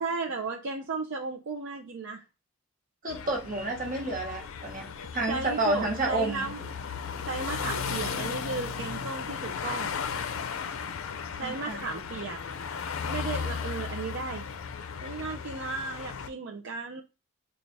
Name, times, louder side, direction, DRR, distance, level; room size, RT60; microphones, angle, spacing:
voice 1, 0.0-2.2 5.3-6.7 7.3-9.9 11.4-12.4 13.1-14.4 15.0-17.0, right 4 dB, 60° right, 0 dB, 0.5 m, -35 dB
voice 2, 3.0-4.8 5.1-6.5 11.4-11.8, right 2 dB, 40° right, 0 dB, 1.2 m, -30 dB
sound 1, 3.1-16.3, left 6 dB, 75° left, 0.5 m, -36 dB
3.2 x 2.4 x 4.0 m, 0.28 s
head